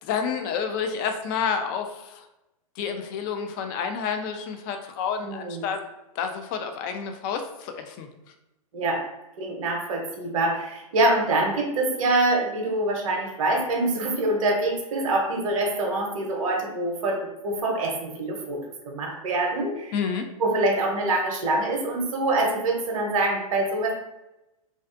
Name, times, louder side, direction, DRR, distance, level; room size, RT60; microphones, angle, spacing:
voice 1, 0.0-2.2 2.8-5.8 6.2-8.1 19.9-20.3, left 6 dB, 35° left, 6 dB, 0.3 m, -29 dB
voice 2, 5.2-5.7 8.7-9.0 9.4-19.9 20.4-23.9, right 2 dB, 65° right, 1 dB, 0.7 m, -25 dB
2.4 x 2.4 x 2.4 m, 0.95 s
hypercardioid pair, 115°, 19 cm